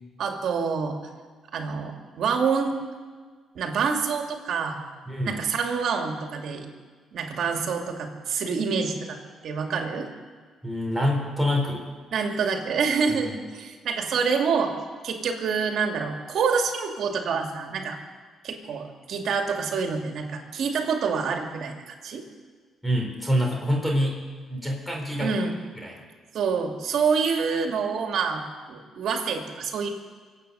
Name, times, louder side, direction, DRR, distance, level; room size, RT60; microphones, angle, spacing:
voice 1, 0.2-1.0 1.5-2.7 3.6-4.8 5.2-6.7 7.1-9.2 9.4-10.1 12.1-14.7 15.0-18.0 18.4-21.8 22.0-22.2 25.2-25.5 26.3-28.4 28.7-29.9, right 5 dB, 70° right, 3 dB, 2.3 m, -27 dB
voice 2, 5.1-5.4 10.6-11.8 13.2-13.3 22.8-24.2 24.5-25.4 25.8-26.0, equal, 5° left, 0 dB, 4.0 m, -26 dB
24.5 x 8.6 x 6.9 m, 1.5 s
cardioid pair, 90°, 0 cm